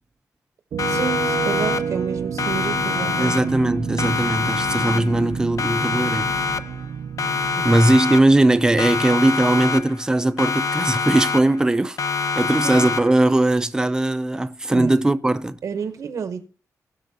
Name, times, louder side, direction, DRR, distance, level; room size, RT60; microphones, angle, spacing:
sound 1, 0.7-9.4, right 7 dB, 85° right, 0.6 m, -30 dB
Siren, 0.8-2.1 2.4-3.7 4.0-5.3 5.6-6.9 7.2-8.5 8.8-10.1 10.4-11.7 12.0-13.3, left 5 dB, 60° left, 0.4 m, -25 dB
voice 1, 0.8-3.4 7.5-7.7 12.6-12.9 14.7-14.9 15.6-16.5, right 6 dB, 65° right, 0.9 m, -29 dB
voice 2, 3.2-6.3 7.6-12.0 12.4-15.6, right 2 dB, 10° right, 0.5 m, -19 dB
18.5 x 6.3 x 2.8 m
wide cardioid pair, 160°, 6 cm